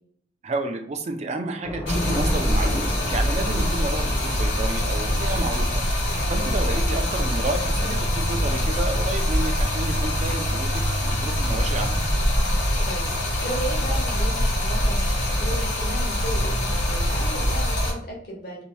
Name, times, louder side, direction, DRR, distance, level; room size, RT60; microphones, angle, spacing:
voice 1, 0.4-12.0, right 2 dB, 35° right, 5 dB, 0.4 m, -31 dB
Thunder / Rain, 1.6-14.1, left 1 dB, 20° left, 0.7 m, -37 dB
Stream, 1.9-17.9, equal, 80° left, 1.0 m, -24 dB
voice 2, 12.9-18.6, right 1 dB, 55° left, -2 dB, 1.0 m, -35 dB
2.7 x 2.2 x 3.1 m, 0.62 s
head